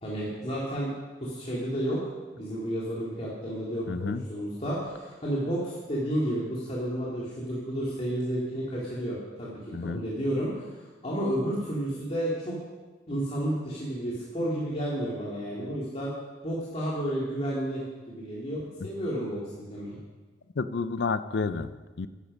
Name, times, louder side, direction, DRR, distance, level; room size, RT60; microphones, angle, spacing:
voice 1, 0.0-0.9 1.2-2.0 2.3-9.5 9.8-12.6 13.1-16.1 16.4-20.0, right 1 dB, 35° left, -6 dB, 2.2 m, -31 dB
voice 2, 3.9-4.2 9.7-10.0 20.6-22.1, left 4 dB, 75° left, 13 dB, 0.5 m, -30 dB
10.5 x 10.0 x 5.4 m, 1.3 s
head